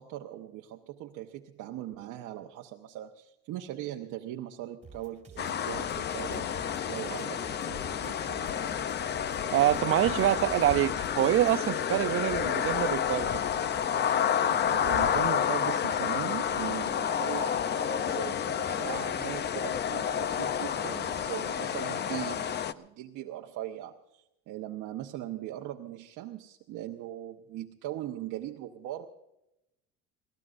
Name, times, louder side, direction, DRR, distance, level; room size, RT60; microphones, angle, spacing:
voice 1, 0.0-6.5 6.9-8.5 14.5-29.1, right 13 dB, 65° right, 1.1 m, -40 dB
sound 1, 4.8-11.6, right 5 dB, 20° right, 2.6 m, -52 dB
sound 2, 5.4-22.7, left 8 dB, 35° left, 0.6 m, -30 dB
voice 2, 9.5-13.4, right 13 dB, 45° right, 0.5 m, -26 dB
25.0 x 18.0 x 2.6 m
cardioid pair, 135°, 32 cm